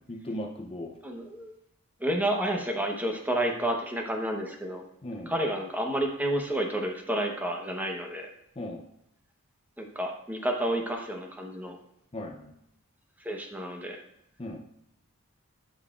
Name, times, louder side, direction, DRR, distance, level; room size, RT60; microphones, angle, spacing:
voice 1, 0.0-1.0 5.0-5.3 8.6-8.8 12.1-12.5 14.4-14.6, left 1 dB, 25° left, 2 dB, 0.6 m, -37 dB
voice 2, 1.0-1.5 2.0-4.8 5.3-8.3 9.8-11.8 13.2-14.0, right 1 dB, 10° right, 2 dB, 0.9 m, -30 dB
12.0 x 5.5 x 2.4 m, 0.78 s
head